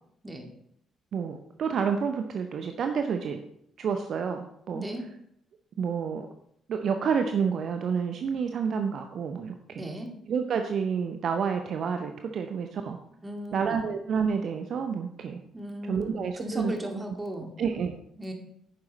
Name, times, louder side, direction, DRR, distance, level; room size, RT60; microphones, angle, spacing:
voice 1, 1.1-3.4 3.8-4.8 5.8-6.3 6.7-9.9 10.3-13.0 13.5-15.4 15.9-17.0 17.6-18.0, right 6 dB, 50° right, 6 dB, 0.7 m, -29 dB
voice 2, 4.7-5.1 9.8-10.1 13.2-13.8 15.5-17.5 18.2-18.3, equal, 20° right, 2 dB, 2.3 m, -36 dB
11.0 x 9.5 x 3.2 m, 0.72 s
figure-of-eight pair, 40°, 0 cm